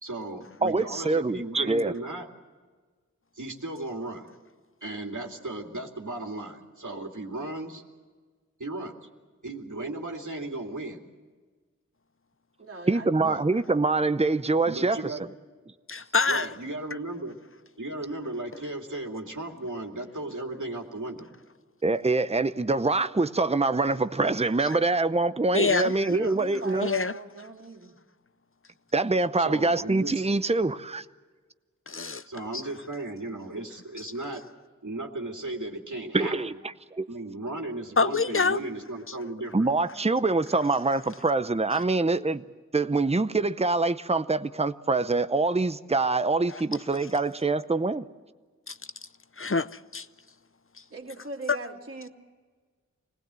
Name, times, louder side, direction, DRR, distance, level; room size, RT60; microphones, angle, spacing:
voice 1, 0.0-2.3 3.4-4.3 4.8-7.8 8.6-9.0 9.4-11.0 13.2-13.4 14.6-15.2 16.3-17.4 17.8-21.3 26.1-26.4 29.4-30.2 32.3-34.4 34.8-36.6 37.1-39.7, right 2 dB, 80° right, 2.7 m, -36 dB
voice 2, 0.6-1.9 12.9-15.1 21.8-26.9 28.9-31.0 36.1-36.5 36.9-37.1 39.5-42.4 42.7-48.0, right 3 dB, 20° right, 0.7 m, -25 dB
voice 3, 12.6-13.5 26.3-27.9 50.9-52.1, right 2 dB, 45° right, 2.8 m, -41 dB
voice 4, 15.9-16.5 25.5-25.9 26.8-27.1 31.9-32.2 32.5-32.6 38.0-38.6 39.1-39.2 46.5-46.6 48.7-48.8 49.4-50.1 51.5-51.6, left 4 dB, 45° left, 0.7 m, -26 dB
26.0 x 19.0 x 7.6 m
wide cardioid pair, 50°, 30 cm